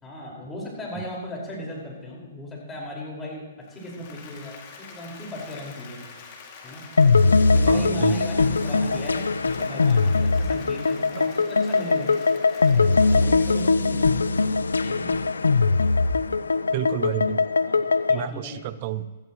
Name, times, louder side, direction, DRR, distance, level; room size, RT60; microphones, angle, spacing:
voice 1, 0.0-3.4 3.7-6.1 6.6-6.9 7.5-12.1 12.7-14.1 14.8-15.2 17.6-18.6, left 1 dB, 15° left, -4 dB, 4.9 m, -37 dB
Applause, 3.6-15.3, left 5 dB, 45° left, 2.4 m, -46 dB
sound 1, 7.0-18.3, left 4 dB, 85° left, 0.5 m, -21 dB
voice 2, 7.7-8.5 11.2-11.3 16.7-17.5 18.1-19.1, right 12 dB, 45° right, 15 dB, 0.6 m, -31 dB
17.0 x 13.5 x 3.1 m, 1.3 s
hypercardioid pair, 125°, 0 cm